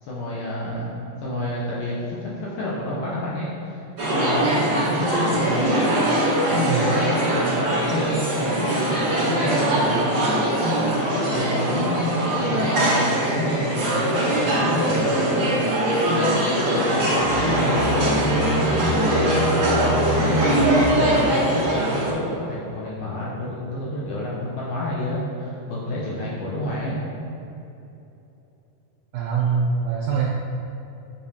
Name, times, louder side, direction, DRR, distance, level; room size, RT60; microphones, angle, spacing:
voice 1, 0.0-3.8 4.1-5.6 6.8-10.7 11.0-15.5 16.5-18.6 19.1-21.1 21.7-27.0, left 1 dB, 75° left, -7 dB, 2.0 m, -29 dB
sound 1, 4.0-22.1, right 1 dB, 60° right, 1.3 m, -22 dB
sound 2, 17.1-21.9, equal, 60° left, 1.9 m, -26 dB
voice 2, 29.1-30.3, right 6 dB, 85° right, -3 dB, 2.0 m, -23 dB
7.1 x 5.4 x 2.8 m, 2.9 s
omnidirectional pair, 4.6 m